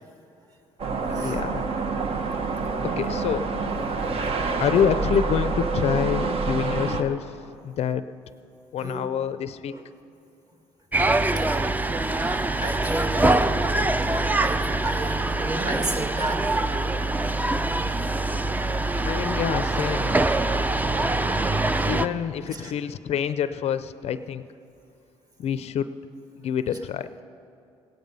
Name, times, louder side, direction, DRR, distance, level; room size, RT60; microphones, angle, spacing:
sound 1, 0.8-7.0, right 4 dB, 50° right, 1.1 m, -27 dB
voice 1, 1.1-1.7 2.8-3.5 4.6-8.0 8.7-9.8 19.0-20.1 21.9-24.4 25.4-25.9 26.4-27.1, left 8 dB, 55° left, 13 dB, 0.5 m, -27 dB
sound 2, 10.9-22.1, right 2 dB, 15° right, 0.5 m, -24 dB
voice 2, 11.2-11.7 12.2-13.6 14.0-16.5 17.5-17.6 22.5-22.7, right 2 dB, 30° right, 4 dB, 2.0 m, -33 dB
17.5 x 9.3 x 5.4 m, 2.6 s
supercardioid pair, 75°, 12 cm